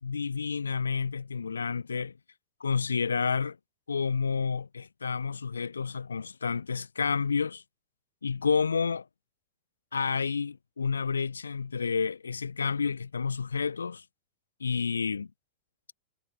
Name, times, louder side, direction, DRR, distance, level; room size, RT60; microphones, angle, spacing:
voice 1, 0.0-2.1 2.6-3.6 3.9-7.6 8.2-9.0 9.9-14.0 14.6-15.3, left 5 dB, 75° left, 1.6 m, -30 dB
figure-of-eight pair, 90°, 0 cm